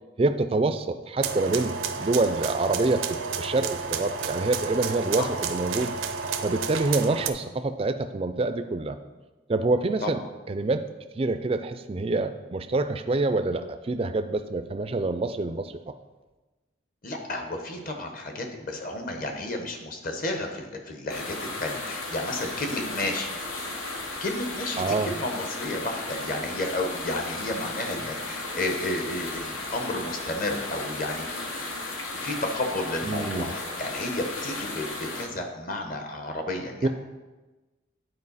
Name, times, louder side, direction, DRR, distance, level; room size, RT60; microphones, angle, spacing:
voice 1, 0.2-5.9 6.4-9.0 9.5-10.2 10.5-10.8 11.2-15.8 24.8-25.1 33.0-33.5 36.8-36.9, right 2 dB, 30° right, 10 dB, 0.3 m, -26 dB
sound 1, 1.2-7.3, right 5 dB, 80° right, 0.5 m, -31 dB
voice 2, 17.0-23.4 24.2-31.3 32.2-36.9, left 2 dB, 45° left, 4 dB, 0.9 m, -32 dB
sound 2, 21.1-35.3, left 2 dB, 90° left, 1.2 m, -35 dB
9.7 x 4.6 x 4.1 m, 1.2 s
head